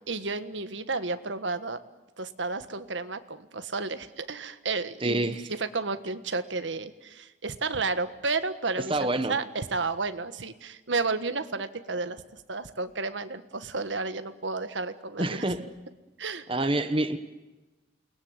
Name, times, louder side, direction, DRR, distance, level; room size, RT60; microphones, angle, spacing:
voice 1, 0.1-1.8 2.2-12.2 12.5-15.4 16.2-16.5, right 3 dB, 85° right, 10 dB, 1.5 m, -32 dB
voice 2, 5.0-5.5 8.8-9.3 15.2-15.7 16.5-17.2, right 2 dB, 30° right, 9 dB, 1.3 m, -27 dB
29.5 x 20.0 x 9.6 m, 1.1 s
head